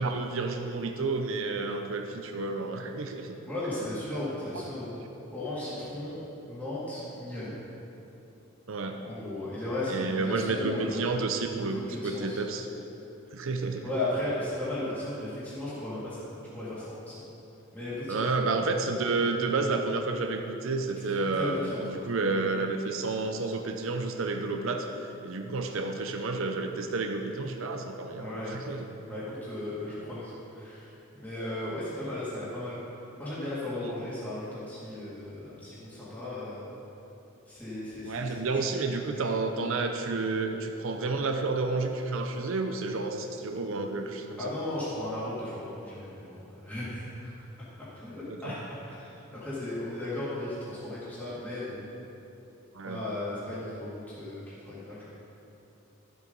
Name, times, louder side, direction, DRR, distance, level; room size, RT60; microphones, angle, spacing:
voice 1, 0.0-3.3 8.7-9.0 9.9-12.7 13.3-13.9 18.1-28.9 38.0-44.5 48.3-48.5 52.7-53.0, right 3 dB, 65° right, 4 dB, 0.6 m, -30 dB
voice 2, 3.5-5.0 5.3-7.6 9.0-11.0 11.7-12.4 13.8-16.2 16.5-17.2 17.7-18.2 21.3-22.0 28.1-28.6 29.1-32.8 33.2-36.7 37.5-38.6 39.1-39.2 44.4-47.3 47.6-51.8 52.9-55.1, left 1 dB, 10° left, -10 dB, 2.4 m, -36 dB
12.5 x 7.5 x 4.0 m, 2.9 s
head